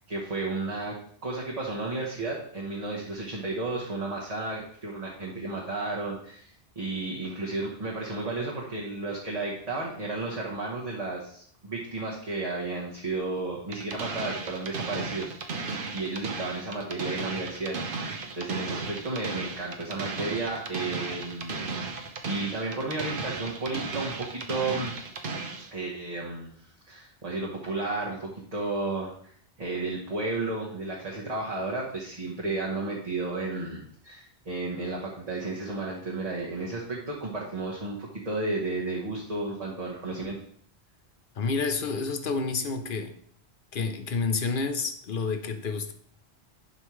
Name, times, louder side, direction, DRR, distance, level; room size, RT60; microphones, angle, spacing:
voice 1, 0.1-0.9 1.2-15.6 15.9-18.1 18.3-22.0 22.2-25.0 25.7-26.5 26.9-29.3 29.6-40.4, right 2 dB, 35° right, -4 dB, 1.3 m, -33 dB
sound 1, 13.7-25.7, right 4 dB, 55° right, 1.0 m, -35 dB
voice 2, 41.4-43.1 43.7-45.9, left 4 dB, 55° left, 8 dB, 0.9 m, -29 dB
11.0 x 5.4 x 3.2 m, 0.62 s
omnidirectional pair, 1.1 m